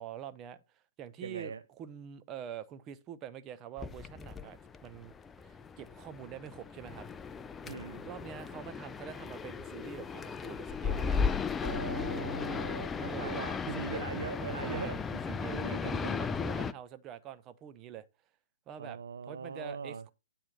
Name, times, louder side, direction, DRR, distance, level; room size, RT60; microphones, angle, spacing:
voice 1, 0.0-7.1 8.0-11.2 13.0-13.5 13.7-14.1 14.6-14.9 15.4-18.0 18.7-20.1, right 9 dB, 25° right, 0.9 m, -46 dB
voice 2, 1.2-1.6 7.6-8.1 11.6-15.0 15.3-16.2 18.8-20.0, right 6 dB, 85° right, 0.6 m, -40 dB
sound 1, 3.8-16.7, left 5 dB, 15° left, 0.5 m, -36 dB
9.7 x 4.4 x 6.6 m
hypercardioid pair, 140°, 0 cm